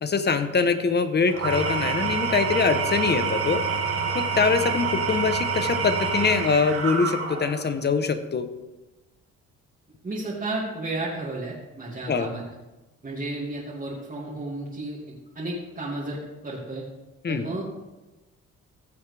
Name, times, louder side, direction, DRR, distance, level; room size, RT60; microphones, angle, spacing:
voice 1, 0.0-3.6 4.1-8.5 12.1-12.3 17.2-17.4, left 5 dB, 35° left, 10 dB, 1.0 m, -23 dB
Engine / Tools, 1.3-7.7, right 5 dB, 50° right, 2.0 m, -27 dB
voice 2, 10.0-12.4 13.0-15.0 15.3-16.8 17.3-17.6, right 2 dB, 30° right, -6 dB, 2.4 m, -32 dB
15.0 x 7.1 x 3.4 m, 1.1 s
cardioid pair, 90°, 30 cm